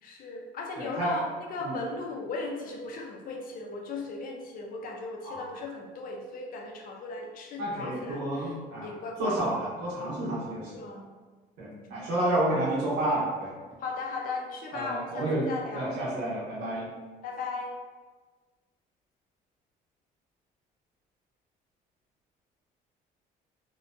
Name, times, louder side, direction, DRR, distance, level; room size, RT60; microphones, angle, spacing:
voice 1, 0.0-8.6 8.8-9.4 10.7-11.1 11.7-12.0 13.8-15.9 17.2-17.8, left 3 dB, 60° left, 1 dB, 0.5 m, -37 dB
voice 2, 0.8-1.1 1.6-1.8 5.2-5.4 7.6-8.9 9.2-10.7 11.6-13.5 14.7-15.5 15.7-16.9, right 1 dB, 90° right, -6 dB, 0.9 m, -30 dB
2.8 x 2.1 x 2.5 m, 1.4 s
cardioid pair, 110°, 17 cm